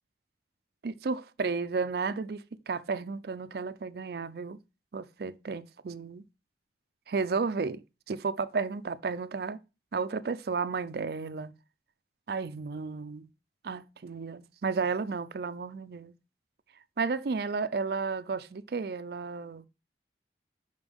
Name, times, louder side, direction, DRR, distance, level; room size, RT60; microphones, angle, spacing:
voice 1, 0.8-4.6 4.9-6.2 7.1-7.8 8.1-9.6 9.9-11.5 12.3-13.3 13.6-16.1 17.0-19.6, right 4 dB, 55° right, 0.4 m, -33 dB
5.5 x 5.2 x 3.4 m
head